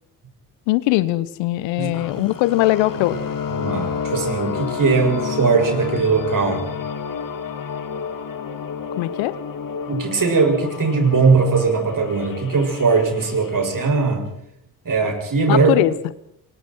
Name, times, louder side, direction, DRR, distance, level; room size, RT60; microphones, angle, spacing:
voice 1, 0.7-3.2 8.9-9.3 15.5-16.0, left 17 dB, 70° left, 18 dB, 1.1 m, -20 dB
sound 1, 1.9-13.9, left 6 dB, 45° left, 2.4 m, -30 dB
voice 2, 3.6-6.7 9.9-14.3 14.8-15.7, right 4 dB, 40° right, 4 dB, 6.7 m, -19 dB
28.5 x 24.0 x 4.7 m, 0.74 s
figure-of-eight pair, 40°, 47 cm